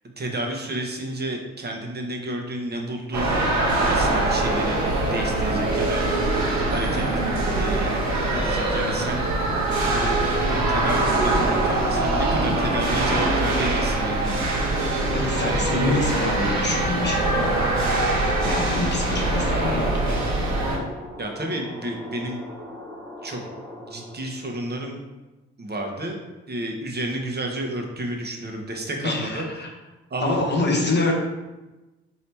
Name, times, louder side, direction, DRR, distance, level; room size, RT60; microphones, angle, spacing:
voice 1, 0.2-3.4 3.9-6.0 6.4-7.1 7.5-8.0 8.3-14.6 15.4-16.1 21.2-22.4 23.2-23.4 23.8-25.0 25.6-26.2 26.5-29.5 30.1-30.9, right 1 dB, 35° right, 1 dB, 1.0 m, -31 dB
sound 1, 3.1-20.8, right 2 dB, 65° right, 1.0 m, -23 dB
voice 2, 15.1-17.6 18.4-20.2 29.0-29.7 30.2-31.1, left 2 dB, 35° left, -1 dB, 1.0 m, -26 dB
sound 2, 16.1-24.4, left 1 dB, 5° left, 1.1 m, -41 dB
3.1 x 2.8 x 4.4 m, 1.1 s
hypercardioid pair, 45°, 30 cm